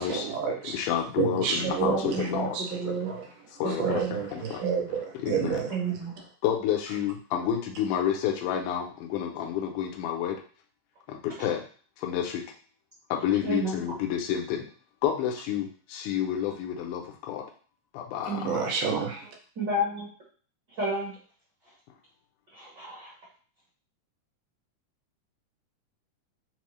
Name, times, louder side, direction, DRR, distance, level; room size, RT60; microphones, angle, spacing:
voice 1, 0.0-0.8 1.2-3.3 3.7-5.7 18.4-19.3, right 6 dB, 85° right, 1 dB, 2.3 m, -30 dB
voice 2, 0.6-2.6 3.5-4.6 5.2-5.6 6.4-10.4 11.1-11.6 12.0-12.4 13.1-14.7 15.0-17.4 17.9-18.7, left 9 dB, 80° left, 2 dB, 2.0 m, -29 dB
voice 3, 1.5-3.1 3.6-4.2 4.6-4.7 5.7-6.2 13.4-13.7 18.2-18.6 19.6-20.1 20.8-21.1 22.5-23.1, right 2 dB, 50° right, -6 dB, 1.3 m, -31 dB
5.3 x 2.0 x 3.1 m, 0.42 s
omnidirectional pair, 3.8 m